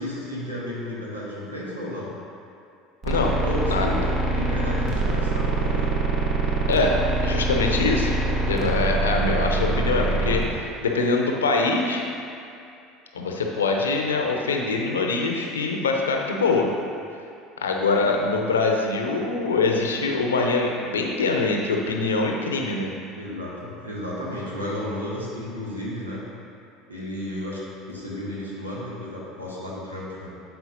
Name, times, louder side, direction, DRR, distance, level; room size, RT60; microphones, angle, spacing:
voice 1, 0.0-2.1 3.4-5.9 18.0-18.1 23.1-26.2 26.9-30.3, left 1 dB, 85° right, -6 dB, 1.4 m, -33 dB
sound 1, 3.0-10.4, right 2 dB, 35° right, 1.2 m, -24 dB
voice 2, 6.7-8.2 8.5-12.0 13.1-16.7 17.6-22.9, left 3 dB, 75° left, 1 dB, 0.7 m, -23 dB
11.5 x 4.4 x 2.7 m, 2.6 s
figure-of-eight pair, 70°, 0 cm